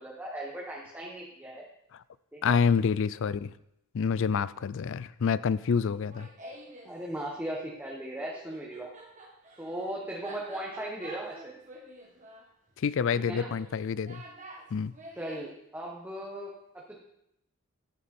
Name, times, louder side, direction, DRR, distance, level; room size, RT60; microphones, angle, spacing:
voice 1, 0.0-1.7 2.3-2.5 6.8-8.9 9.6-11.6 13.2-13.5 15.1-16.5, right 1 dB, 10° right, -3 dB, 1.2 m, -37 dB
voice 2, 2.4-3.5 3.9-6.3 12.8-14.2 14.7-14.9, left 6 dB, 60° left, 18 dB, 0.4 m, -27 dB
Laughter, 5.9-6.9 8.2-15.5, right 1 dB, 35° right, 1.8 m, -48 dB
11.5 x 8.5 x 4.3 m, 0.82 s
head